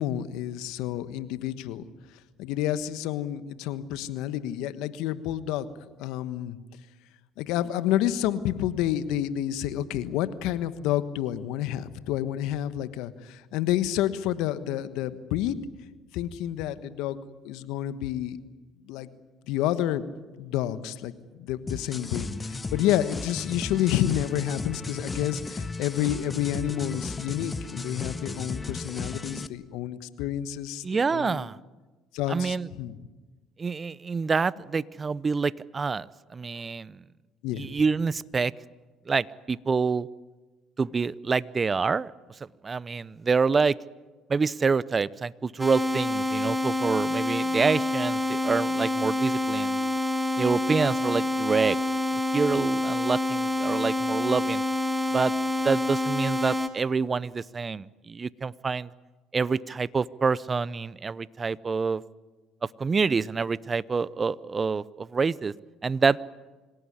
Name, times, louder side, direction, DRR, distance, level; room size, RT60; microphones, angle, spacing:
voice 1, 0.0-1.8 2.4-5.7 6.0-6.6 7.4-15.6 16.1-17.2 17.4-18.4 18.9-19.1 19.5-20.1 20.4-21.1 21.4-31.4 32.1-32.9 37.4-37.7, left 12 dB, 75° left, 13 dB, 1.3 m, -29 dB
sound 1, 21.7-29.5, left 3 dB, 25° left, 1.2 m, -35 dB
voice 2, 30.8-31.6 32.3-32.7 33.6-37.0 37.6-38.5 39.1-40.1 40.8-42.1 42.6-43.8 44.3-49.9 50.4-51.8 52.3-54.6 55.1-55.3 55.6-58.9 59.3-62.0 62.6-65.5 65.8-66.3, right 5 dB, 30° right, 20 dB, 0.7 m, -27 dB
sound 2, 45.6-56.7, left 1 dB, 5° right, 2.5 m, -27 dB
26.5 x 17.5 x 9.9 m, 1.3 s
hypercardioid pair, 65°, 0 cm